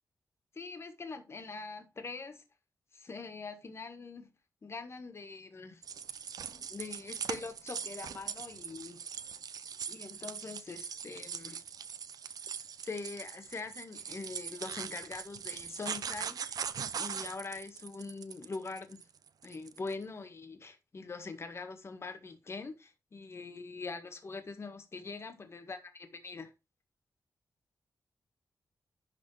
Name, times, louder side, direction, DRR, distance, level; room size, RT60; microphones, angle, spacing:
voice 1, 0.5-2.4 2.9-4.3 4.6-5.8 6.5-9.0 9.9-11.6 12.8-16.6 17.0-19.0 19.4-25.8 26.2-26.5, left 4 dB, 45° left, 1.6 m, -43 dB
sound 1, 5.8-19.9, right 7 dB, 75° right, 0.7 m, -41 dB
11.0 x 3.9 x 4.9 m
wide cardioid pair, 105°, 6 cm